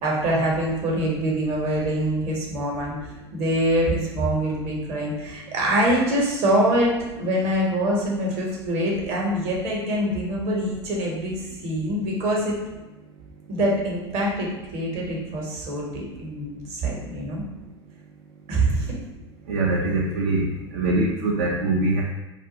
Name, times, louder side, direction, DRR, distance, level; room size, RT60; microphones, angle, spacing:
voice 1, 0.0-3.0 3.3-6.9 7.2-12.5 13.5-17.4 18.5-19.0, right 1 dB, 50° right, -2 dB, 1.0 m, -24 dB
voice 2, 19.5-22.0, right 2 dB, 65° right, -3 dB, 0.5 m, -23 dB
2.4 x 2.3 x 3.8 m, 1.1 s
hypercardioid pair, 85°, 15 cm